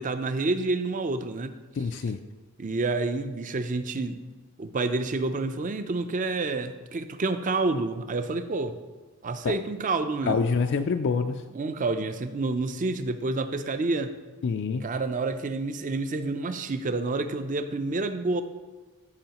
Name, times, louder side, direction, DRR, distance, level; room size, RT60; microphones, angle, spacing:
voice 1, 0.0-1.5 2.6-4.2 4.6-8.8 9.2-10.4 11.5-14.1 14.8-18.4, right 3 dB, 35° right, 9 dB, 0.5 m, -28 dB
voice 2, 1.8-2.2 10.3-11.4 14.4-14.8, left 5 dB, 55° left, 7 dB, 0.4 m, -26 dB
14.5 x 5.6 x 2.9 m, 1.3 s
head